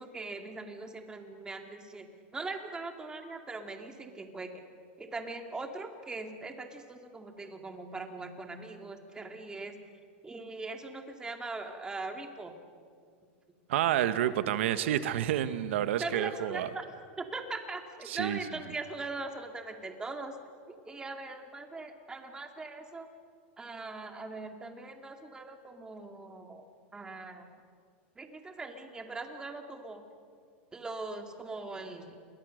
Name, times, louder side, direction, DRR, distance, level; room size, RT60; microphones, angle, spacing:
voice 1, 0.0-2.1 2.3-4.5 5.0-9.7 10.2-12.5 13.5-13.6 16.0-20.4 20.7-23.1 23.6-26.6 26.9-27.4 28.2-30.0 30.7-32.2, right 3 dB, 10° right, 5 dB, 2.3 m, -41 dB
voice 2, 13.7-16.7 18.1-18.4, right 11 dB, 80° right, 11 dB, 1.5 m, -29 dB
29.5 x 22.0 x 6.6 m, 2.1 s
supercardioid pair, 145°, 7 cm